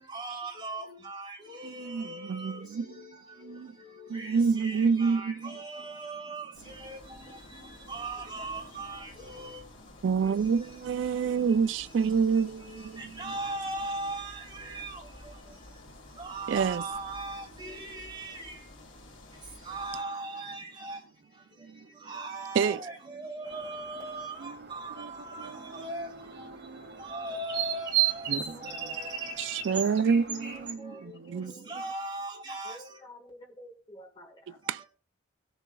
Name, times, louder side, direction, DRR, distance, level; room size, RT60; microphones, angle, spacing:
voice 1, 0.1-2.6 4.1-4.3 4.6-7.0 7.9-9.6 13.2-14.9 16.2-18.6 19.7-21.0 22.1-26.1 27.0-28.3 28.7-29.6 31.7-32.8, right 2 dB, 25° right, 3.0 m, -38 dB
voice 2, 1.6-3.8 4.1-5.6 10.0-13.4 16.5-16.8 21.6-21.9 22.5-22.8 24.4-24.7 25.0-25.1 25.4-27.0 28.3-28.8 29.4-31.7 34.7-34.8, right 5 dB, 85° right, 0.3 m, -29 dB
sound 1, 6.5-20.0, left 1 dB, 85° left, 2.5 m, -51 dB
voice 3, 7.3-8.0 8.4-8.7 9.0-9.2 22.6-22.9 28.3-29.5 29.7-32.0 32.6-34.6, equal, 25° left, 1.6 m, -52 dB
sound 2, 23.4-30.7, right 11 dB, 65° right, 2.0 m, -35 dB
18.0 x 7.0 x 2.3 m
head